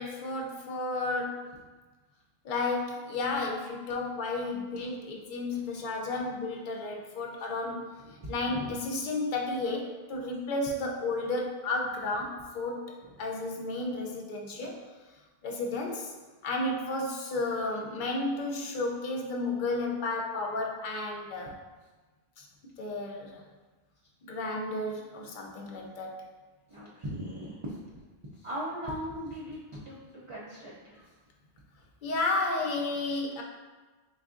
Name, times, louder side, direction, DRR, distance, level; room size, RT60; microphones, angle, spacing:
voice 1, 0.0-1.6 2.4-7.9 8.3-12.9 13.2-14.8 15.4-16.1 16.4-21.5 22.4-22.5 22.8-23.4 24.3-26.2 32.0-33.4, left 2 dB, 60° left, 0 dB, 0.7 m, -32 dB
voice 2, 8.0-8.7 13.0-13.1 26.7-27.8 28.3-31.0, equal, 40° right, -7 dB, 0.5 m, -39 dB
4.0 x 3.4 x 2.4 m, 1.3 s
omnidirectional pair, 1.0 m